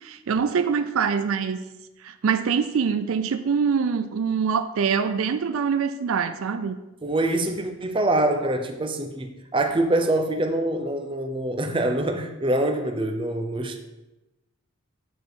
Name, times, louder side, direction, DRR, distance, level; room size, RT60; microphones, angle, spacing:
voice 1, 0.0-1.6 2.0-6.8, right 6 dB, 75° right, 10 dB, 0.4 m, -24 dB
voice 2, 7.0-13.8, right 1 dB, 25° right, 5 dB, 0.6 m, -25 dB
8.9 x 4.7 x 4.0 m, 1.0 s
head